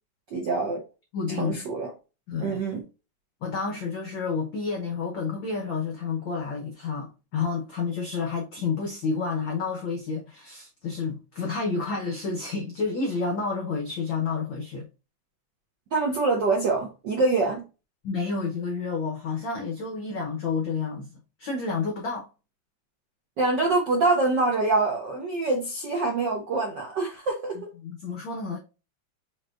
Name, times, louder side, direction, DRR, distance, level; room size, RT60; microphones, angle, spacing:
voice 1, 0.3-0.8 1.4-1.9 2.4-2.8 15.9-17.6 23.4-27.6, right 3 dB, 70° right, 1.0 m, -25 dB
voice 2, 1.1-1.6 2.3-2.6 3.4-14.9 18.0-22.3 27.8-28.6, left 4 dB, 85° left, 1.0 m, -30 dB
6.5 x 3.1 x 2.4 m
omnidirectional pair, 3.5 m